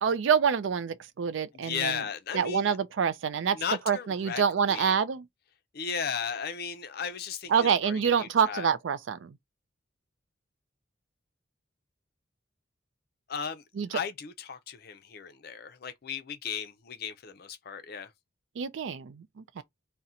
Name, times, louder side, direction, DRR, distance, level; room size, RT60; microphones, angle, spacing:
voice 1, 0.0-2.0 2.3-3.6 3.9-5.2 7.5-9.4 13.8-13.9 18.6-19.6, right 7 dB, 70° right, 0.4 m, -27 dB
voice 2, 1.5-2.8 3.5-4.4 4.7-4.9 5.7-8.7 13.3-13.6 13.9-18.1 19.6-19.7, left 7 dB, 50° left, 0.5 m, -35 dB
2.8 x 2.1 x 3.6 m
head